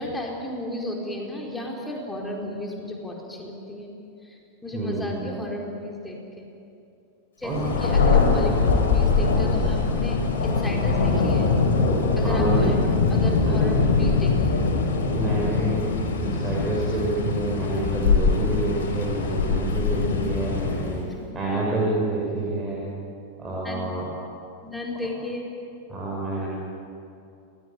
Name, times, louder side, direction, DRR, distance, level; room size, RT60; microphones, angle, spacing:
voice 1, 0.0-3.9 4.2-6.5 7.4-11.5 12.2-14.3 21.2-21.3 23.6-23.9 24.6-25.5, left 1 dB, 5° left, -1 dB, 4.5 m, -34 dB
voice 2, 4.7-5.2 7.4-7.7 8.5-8.7 12.2-12.7 13.4-13.6 15.1-21.0 21.3-22.8 23.4-24.1 25.9-26.5, right 2 dB, 20° right, -4 dB, 6.0 m, -28 dB
Thunder, 7.5-21.1, left 4 dB, 60° left, 4.8 m, -22 dB
28.0 x 20.0 x 9.1 m, 2.6 s
figure-of-eight pair, 90°, 0 cm